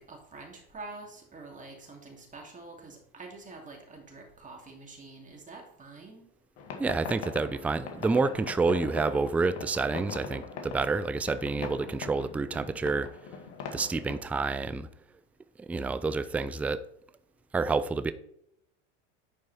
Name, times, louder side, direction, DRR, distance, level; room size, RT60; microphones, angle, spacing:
voice 1, 0.0-6.3, right 3 dB, 20° right, 1 dB, 2.8 m, -46 dB
sound 1, 6.6-14.2, left 5 dB, 65° left, 2.1 m, -41 dB
voice 2, 6.8-13.1 13.7-14.9 15.6-16.8 17.5-18.1, right 4 dB, 5° right, 14 dB, 0.3 m, -28 dB
10.5 x 4.7 x 4.3 m, 0.72 s
hypercardioid pair, 105°, 35 cm